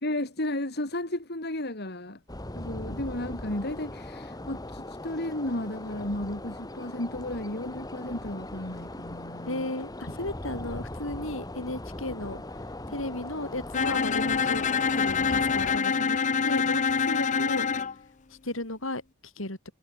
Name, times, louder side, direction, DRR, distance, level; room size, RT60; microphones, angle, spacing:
voice 1, 0.0-2.2 2.5-9.7, left 1 dB, 55° left, 3.8 m, -33 dB
sound 1, 2.3-15.8, left 1 dB, 20° left, 1.9 m, -40 dB
voice 2, 9.5-12.4 12.9-14.7 14.9-17.7 18.3-19.6, left 1 dB, 80° left, 7.2 m, -34 dB
Bowed string instrument, 13.7-17.9, left 5 dB, 40° left, 0.7 m, -26 dB
head